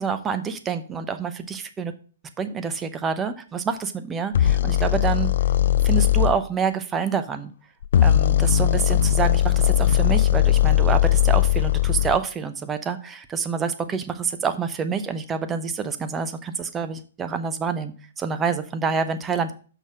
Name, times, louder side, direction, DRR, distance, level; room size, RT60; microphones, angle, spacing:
voice 1, 0.0-1.9 2.4-5.3 5.8-7.5 8.0-19.5, right 6 dB, 15° right, 9 dB, 0.8 m, -27 dB
sound 1, 4.3-6.3 7.8-12.2, left 12 dB, 65° left, 0.4 m, -19 dB
6.4 x 5.5 x 6.2 m, 0.41 s
hypercardioid pair, 125°, 0 cm